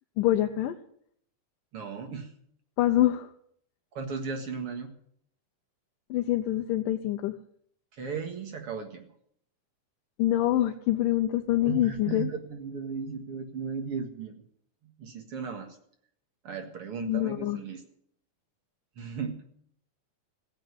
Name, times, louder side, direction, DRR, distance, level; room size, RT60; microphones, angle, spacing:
voice 1, 0.2-0.8 2.8-3.3 6.1-7.4 10.2-12.3 17.0-17.6, left 13 dB, 90° left, 5 dB, 2.4 m, -25 dB
voice 2, 1.7-2.3 3.9-4.9 7.9-9.1 11.6-14.4 14.8-15.7 16.4-17.8 19.0-19.4, right 5 dB, 50° right, 5 dB, 2.3 m, -36 dB
16.0 x 9.1 x 9.6 m, 0.65 s
omnidirectional pair, 3.8 m